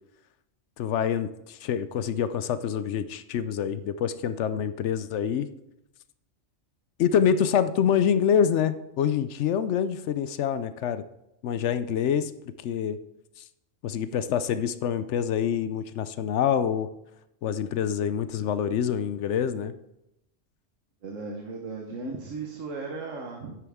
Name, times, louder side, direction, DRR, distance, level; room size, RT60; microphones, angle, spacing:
voice 1, 0.8-5.5 7.0-11.0 11.4-12.3 12.6-13.0 13.4-13.5 13.8-16.9 17.4-19.7, left 8 dB, 70° left, 13 dB, 0.9 m, -26 dB
voice 2, 21.0-23.6, right 3 dB, 85° right, 1 dB, 1.5 m, -36 dB
9.5 x 9.0 x 3.6 m, 0.87 s
omnidirectional pair, 1.3 m